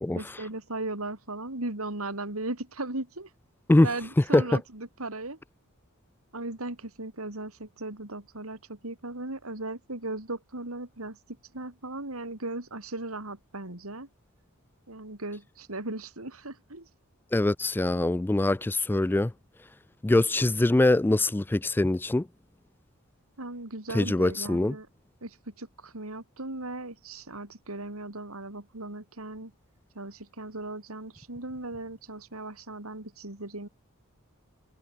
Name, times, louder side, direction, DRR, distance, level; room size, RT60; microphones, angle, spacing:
voice 1, 0.1-3.3 3.8-5.4 6.3-11.2 11.5-14.1 14.9-16.9 23.4-24.9 25.2-29.5 30.0-33.7, right 2 dB, 80° right, 3.8 m, -37 dB
voice 2, 17.3-19.3 20.0-22.2 23.9-24.7, left 2 dB, 10° left, 0.3 m, -23 dB
head